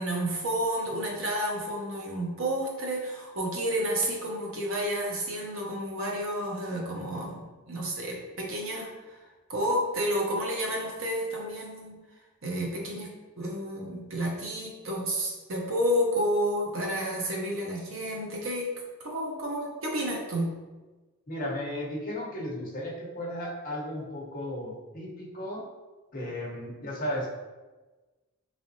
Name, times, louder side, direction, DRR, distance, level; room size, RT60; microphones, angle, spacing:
voice 1, 0.0-7.4 7.7-9.2 9.5-12.0 12.4-13.1 13.4-18.7 19.0-20.5, equal, 65° right, -1 dB, 0.9 m, -30 dB
voice 2, 21.3-25.6 26.1-27.3, left 1 dB, 40° left, -4 dB, 0.9 m, -35 dB
4.0 x 3.3 x 2.7 m, 1.2 s
head